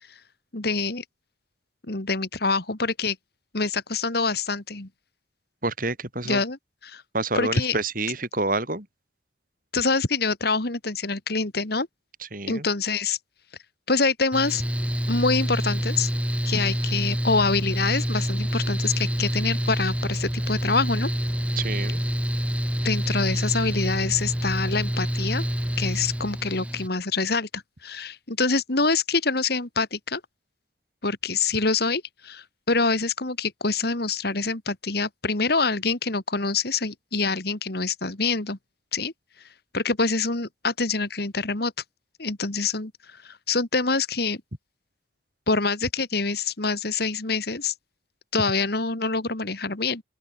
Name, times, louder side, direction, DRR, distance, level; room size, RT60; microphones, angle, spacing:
voice 1, 0.5-1.0 1.9-3.2 3.5-4.9 6.2-6.6 6.8-7.0 7.3-7.8 9.7-11.9 12.5-13.2 13.9-14.6 15.1-16.1 16.5-21.1 22.8-25.4 25.8-30.2 31.0-38.6 38.9-39.1 39.7-41.7 42.2-42.9 43.2-44.4 45.5-47.7 48.3-50.0, left 4 dB, 55° left, 2.1 m, -25 dB
voice 2, 5.6-6.4 7.1-8.9 12.3-12.7 21.6-22.0, right 2 dB, 45° right, 7.4 m, -28 dB
Mechanical fan, 14.3-26.9, equal, 5° right, 2.0 m, -27 dB
open air
head